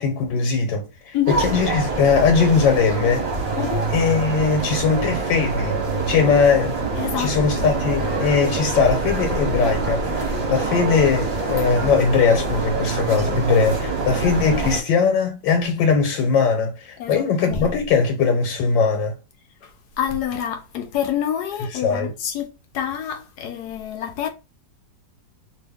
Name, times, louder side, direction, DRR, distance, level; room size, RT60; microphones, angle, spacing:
voice 1, 0.0-3.3 3.9-5.8 6.1-6.8 7.2-19.2 21.8-22.1, left 5 dB, 85° left, 1.6 m, -20 dB
sound 1, 1.3-14.8, right 3 dB, 40° right, 1.0 m, -25 dB
voice 2, 3.5-3.9 7.0-7.7 11.5-11.6 17.0-17.7 19.6-24.3, left 9 dB, 70° left, 1.1 m, -27 dB
3.0 x 2.7 x 3.4 m
omnidirectional pair, 2.0 m